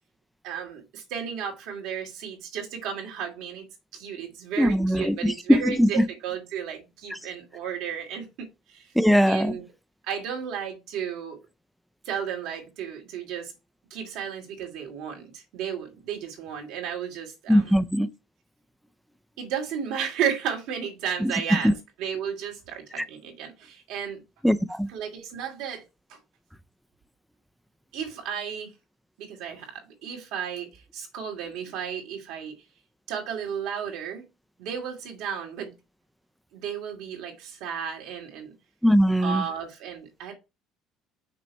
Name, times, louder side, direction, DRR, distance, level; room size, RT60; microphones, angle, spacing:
voice 1, 0.4-3.7 3.9-8.9 9.2-9.6 10.1-11.4 12.1-13.5 13.9-17.7 19.4-24.2 24.9-25.8 26.1-26.2 27.9-28.7 29.2-32.5 33.1-34.2 34.6-35.7 36.5-38.5 39.2-40.3, right 8 dB, 75° right, 2.2 m, -33 dB
voice 2, 4.6-6.0 9.0-9.5 17.5-18.1 21.2-21.3 21.6-21.7 24.4-24.9 38.8-39.4, equal, ahead, 0.5 m, -20 dB
6.0 x 4.1 x 4.5 m
cardioid pair, 125°, 0 cm